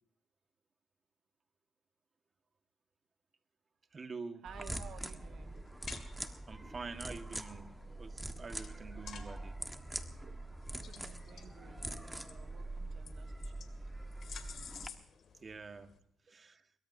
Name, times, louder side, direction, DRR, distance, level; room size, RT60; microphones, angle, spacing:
voice 1, 3.9-4.4 6.5-9.6 15.4-15.9 16.3-16.6, right 4 dB, 35° right, 7 dB, 1.6 m, -46 dB
voice 2, 4.4-5.6 10.2-10.4 10.7-13.7, right 8 dB, 70° right, 9 dB, 1.0 m, -55 dB
sound 1, 4.5-14.9, right 1 dB, 5° right, 1.5 m, -44 dB
sound 2, 5.4-16.0, left 7 dB, 60° left, 2.5 m, -54 dB
23.5 x 22.5 x 2.7 m, 0.66 s
cardioid pair, 90°, 0 cm